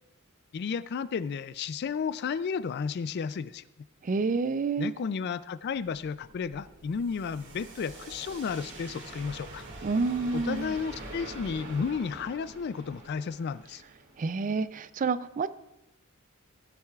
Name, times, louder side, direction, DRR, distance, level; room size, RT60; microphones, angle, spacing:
voice 1, 0.5-3.6 4.8-9.6 10.3-13.8, left 6 dB, 45° left, 16 dB, 0.3 m, -33 dB
voice 2, 4.0-4.9 9.8-10.8 14.2-15.5, right 4 dB, 35° right, 14 dB, 0.3 m, -28 dB
sound 1, 5.7-14.6, right 2 dB, 55° right, 2.2 m, -45 dB
17.0 x 10.5 x 2.4 m, 0.89 s
head